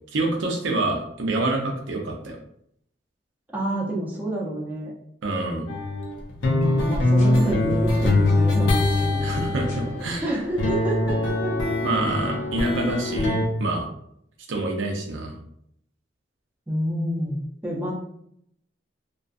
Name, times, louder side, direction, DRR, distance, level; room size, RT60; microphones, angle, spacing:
voice 1, 0.1-2.4 5.2-5.7 9.2-10.3 11.8-13.9 14.5-15.3, right 2 dB, 85° right, 2 dB, 0.5 m, -26 dB
voice 2, 3.5-4.9 6.4-9.3 10.2-11.5 16.7-17.9, right 1 dB, 10° right, -3 dB, 0.5 m, -28 dB
sound 1, 5.7-10.2 10.5-13.5, left 2 dB, 90° left, 0.5 m, -23 dB
sound 2, 7.2-13.1, left 1 dB, 40° left, 0.6 m, -40 dB
2.4 x 2.3 x 2.4 m, 0.71 s
head